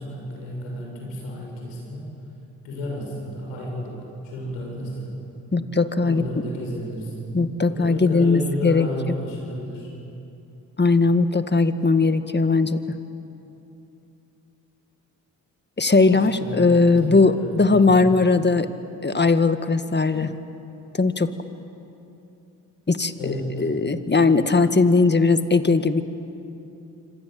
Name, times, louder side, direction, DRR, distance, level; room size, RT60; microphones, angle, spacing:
voice 1, 0.0-2.1 2.6-5.2 6.0-9.9 15.9-18.0 23.2-23.7, equal, 85° left, -1 dB, 7.2 m, -32 dB
voice 2, 5.5-6.2 7.3-9.1 10.8-12.8 15.8-18.7 19.0-20.3 20.9-21.3 22.9-26.0, left 3 dB, 25° left, 10 dB, 1.9 m, -19 dB
27.0 x 26.0 x 7.9 m, 2.8 s
hypercardioid pair, 45°, 45 cm